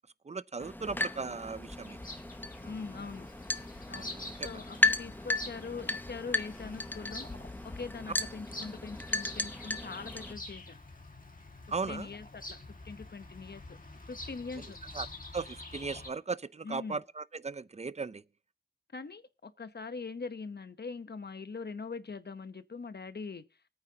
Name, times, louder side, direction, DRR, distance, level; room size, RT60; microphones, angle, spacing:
voice 1, 0.3-2.0 3.9-4.5 11.7-12.1 14.9-15.1 15.3-18.2, right 4 dB, 40° right, 0.6 m, -37 dB
sound 1, 0.6-10.3, left 2 dB, 10° left, 0.8 m, -35 dB
Bird vocalization bird call bird song, 1.4-16.1, left 2 dB, 55° left, 1.9 m, -47 dB
voice 2, 2.6-3.3 3.9-7.3 7.6-10.8 11.9-13.6 14.1-14.8 16.6-17.0 18.9-23.4, left 4 dB, 75° left, 0.9 m, -42 dB
24.5 x 8.9 x 2.8 m
wide cardioid pair, 45°, 17 cm